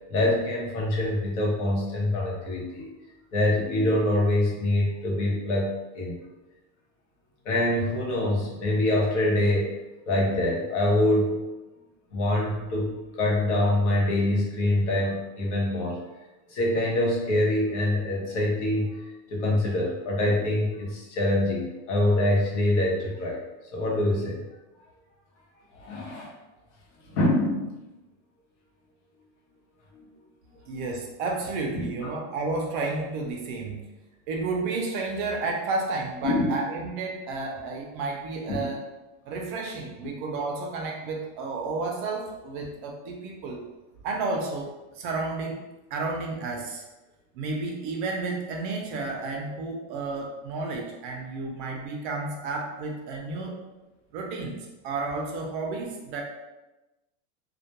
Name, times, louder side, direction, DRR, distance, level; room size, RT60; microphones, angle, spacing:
voice 1, 0.1-2.9 3.3-6.1 7.4-9.7 10.1-11.4 12.1-16.0 16.5-19.0 19.3-23.4 23.7-24.4 25.8-26.3 27.1-27.7 36.2-36.5 38.5-38.6, left 1 dB, 80° left, -3 dB, 0.9 m, -25 dB
voice 2, 30.7-33.8 34.3-38.8 39.3-43.6 44.0-45.6 45.9-46.8 47.3-53.6 54.1-56.2, right 3 dB, 45° right, 0 dB, 0.4 m, -31 dB
2.2 x 2.1 x 2.8 m, 1.1 s
supercardioid pair, 175°, 35 cm